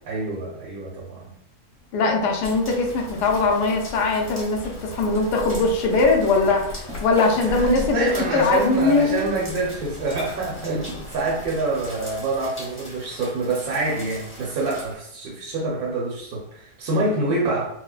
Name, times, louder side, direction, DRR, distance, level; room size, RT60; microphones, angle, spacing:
voice 1, 0.1-1.4 4.9-5.2 7.4-17.7, right 2 dB, 70° right, -4 dB, 1.1 m, -26 dB
sound 1, 1.8-12.5, left 2 dB, 40° left, 1.6 m, -38 dB
voice 2, 1.9-9.2, left 3 dB, 85° left, 1 dB, 1.2 m, -21 dB
sound 2, 2.4-14.9, equal, 10° left, 0.7 m, -42 dB
4.3 x 2.1 x 2.3 m, 0.74 s
omnidirectional pair, 1.7 m